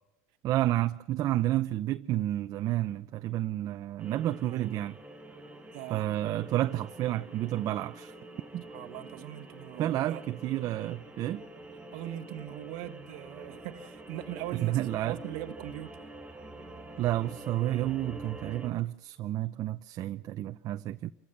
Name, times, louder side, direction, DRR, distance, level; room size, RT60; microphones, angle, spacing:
voice 1, 0.4-5.0 5.9-8.1 8.5-8.6 9.8-11.4 14.5-15.2 17.0-21.1, right 14 dB, 45° right, 0.7 m, -30 dB
sound 1, 4.0-18.7, right 1 dB, 15° right, 3.5 m, -47 dB
voice 2, 5.7-6.1 8.7-10.2 11.9-16.0, right 13 dB, 65° right, 1.2 m, -40 dB
28.0 x 15.0 x 6.6 m
supercardioid pair, 110°, 8 cm